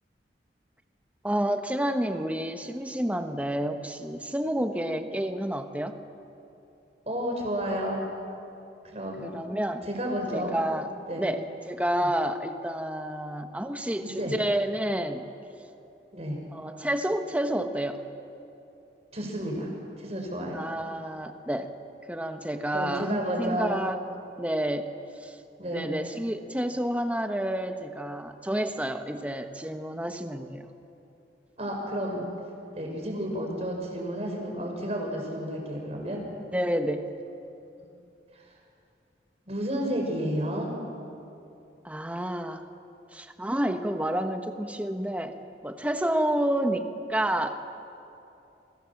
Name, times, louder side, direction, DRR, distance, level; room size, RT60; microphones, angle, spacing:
voice 1, 1.2-6.0 9.2-9.9 10.3-10.9 11.2-15.2 16.5-18.0 20.5-21.7 22.1-24.0 24.4-24.9 25.2-25.4 25.7-30.7 36.5-37.1 41.8-42.7 43.1-45.4 45.6-47.5, right 1 dB, 10° right, 6 dB, 1.3 m, -29 dB
voice 2, 7.1-8.1 8.9-9.3 9.9-10.6 11.1-11.3 12.0-12.1 14.0-14.3 16.1-16.4 19.1-19.7 20.0-20.6 22.7-23.8 25.6-25.9 31.6-32.2 32.7-36.2 37.8-37.9 38.3-38.4 39.5-40.7, equal, 35° right, 1 dB, 5.9 m, -31 dB
30.0 x 24.0 x 7.3 m, 2.8 s
head